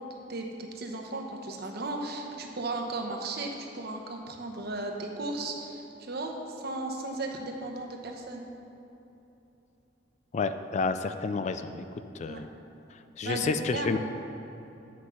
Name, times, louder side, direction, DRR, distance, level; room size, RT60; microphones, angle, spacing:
voice 1, 0.0-3.5 3.7-8.4 12.3-12.5 13.2-14.0, right 2 dB, 55° right, 2 dB, 0.9 m, -35 dB
voice 2, 10.3-11.8 12.1-12.5 12.9-14.0, left 4 dB, 40° left, 10 dB, 0.3 m, -30 dB
7.5 x 6.2 x 5.7 m, 3.0 s
head